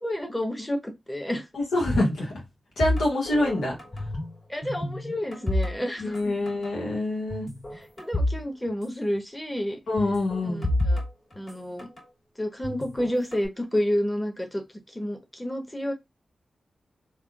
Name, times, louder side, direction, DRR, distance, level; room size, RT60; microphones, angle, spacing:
voice 1, 0.0-1.4 4.5-6.4 7.7-9.8 10.4-11.0 11.4-11.9 12.4-14.6 14.9-15.9, equal, 15° left, 1.1 m, -30 dB
voice 2, 1.5-2.4 2.8-3.7 6.0-7.5 9.9-10.7, left 1 dB, 90° left, 1.2 m, -26 dB
sound 1, 2.8-4.4 4.6-6.2 6.5-6.7 7.3-8.4 8.7-8.8 10.0-12.0 12.6-13.5, left 1 dB, 50° left, 1.9 m, -29 dB
3.5 x 2.4 x 2.4 m
supercardioid pair, 40°, 0 cm